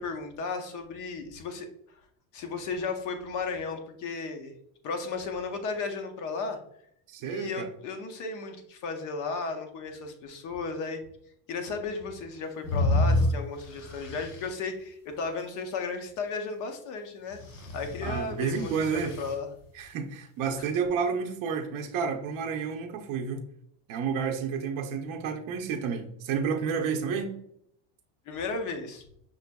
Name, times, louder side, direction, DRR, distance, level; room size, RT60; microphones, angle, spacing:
voice 1, 0.0-1.7 2.3-4.5 4.8-6.6 7.2-11.0 11.5-17.4 17.7-19.5 28.3-29.0, left 4 dB, 45° left, 5 dB, 0.7 m, -34 dB
voice 2, 7.1-7.7 18.0-19.1 19.7-23.5 23.9-27.3, right 6 dB, 50° right, 3 dB, 0.7 m, -30 dB
sound 1, 12.6-14.5 17.3-19.3, left 1 dB, 85° left, 1.3 m, -29 dB
5.9 x 2.5 x 2.2 m, 0.70 s
cardioid pair, 160°, 44 cm